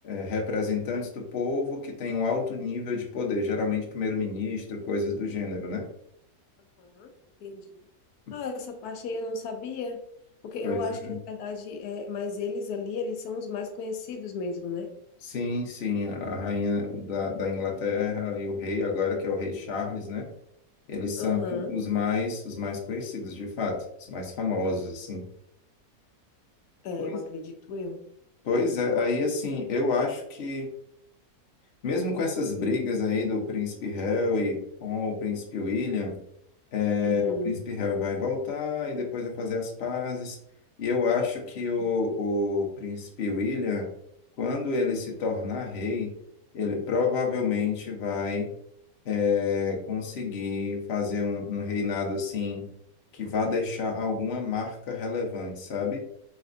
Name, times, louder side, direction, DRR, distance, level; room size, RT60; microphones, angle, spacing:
voice 1, 0.0-5.9 10.6-11.2 15.2-20.3 20.9-25.2 27.0-27.2 28.4-30.7 31.8-36.2 36.7-40.4 40.8-43.9 44.4-46.1 46.5-48.5 49.0-52.7 53.1-56.0, left 4 dB, 50° left, 1 dB, 1.0 m, -29 dB
voice 2, 6.8-7.1 7.4-7.7 8.3-10.0 10.4-14.9 21.2-21.8 26.8-28.0 37.0-37.6 41.8-41.9, left 3 dB, 80° left, 4 dB, 1.1 m, -34 dB
4.2 x 3.4 x 2.5 m, 0.71 s
omnidirectional pair, 1.6 m